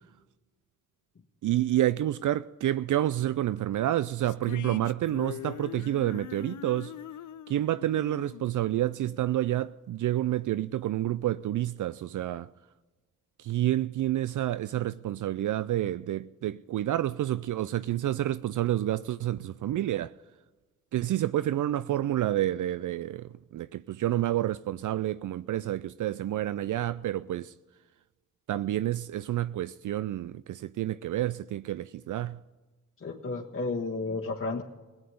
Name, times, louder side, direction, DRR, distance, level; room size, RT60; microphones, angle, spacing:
voice 1, 1.4-6.9 7.5-12.5 13.4-20.1 20.9-27.5 28.5-32.4, right 13 dB, 65° right, 0.4 m, -29 dB
sound 1, 4.2-9.6, left 12 dB, 65° left, 0.5 m, -43 dB
voice 2, 33.0-34.6, left 3 dB, 40° left, 1.5 m, -32 dB
17.0 x 8.9 x 9.4 m
cardioid pair, 55°, 33 cm